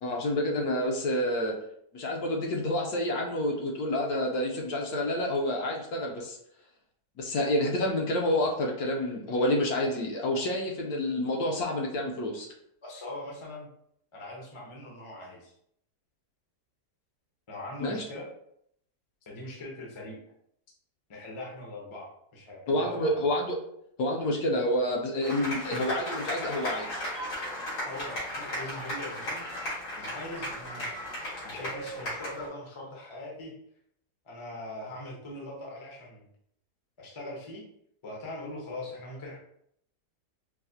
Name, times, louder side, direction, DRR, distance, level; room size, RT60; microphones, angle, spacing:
voice 1, 0.0-1.5 1.9-6.4 7.2-12.5 17.8-18.0 22.7-23.5 24.0-27.0, left 1 dB, 70° left, 0 dB, 1.1 m, -28 dB
voice 2, 12.8-13.7 14.1-15.5 17.5-18.3 19.3-20.2 21.1-23.2 27.8-30.9 31.4-33.5 34.2-36.2 37.0-37.6 38.0-39.4, left 1 dB, 35° left, -2 dB, 0.4 m, -41 dB
sound 1, 25.2-32.5, equal, 90° left, 2.3 m, -36 dB
4.7 x 2.1 x 2.7 m, 0.71 s
omnidirectional pair, 1.8 m